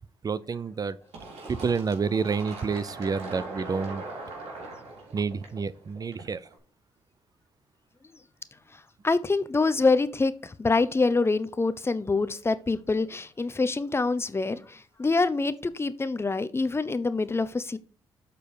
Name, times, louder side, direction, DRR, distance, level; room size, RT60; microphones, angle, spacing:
voice 1, 0.2-1.0 1.5-4.0 5.1-6.5, right 5 dB, 35° right, 0.5 m, -29 dB
Fill (with liquid), 1.1-6.5, right 2 dB, 85° right, 2.9 m, -40 dB
voice 2, 9.0-17.8, left 3 dB, 25° left, 0.8 m, -25 dB
7.3 x 4.5 x 4.9 m
cardioid pair, 70°, 10 cm